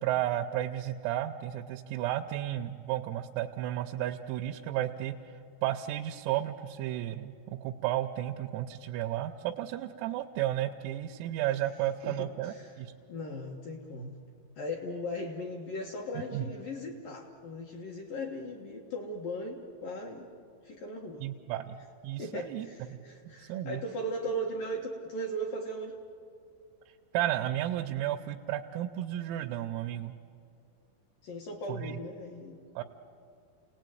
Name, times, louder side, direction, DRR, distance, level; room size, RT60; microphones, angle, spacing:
voice 1, 0.0-12.9 16.2-16.5 21.2-21.8 22.0-22.7 22.9-23.0 23.4-23.8 27.1-30.2 31.7-32.0 32.8-32.9, right 13 dB, 90° right, 3 dB, 3.5 m, -33 dB
voice 2, 12.0-12.8 13.1-14.2 14.6-20.3 20.6-21.2 22.2-26.0 31.2-32.6, equal, 65° left, 0 dB, 2.3 m, -38 dB
29.0 x 18.5 x 9.2 m, 2.5 s
omnidirectional pair, 6.0 m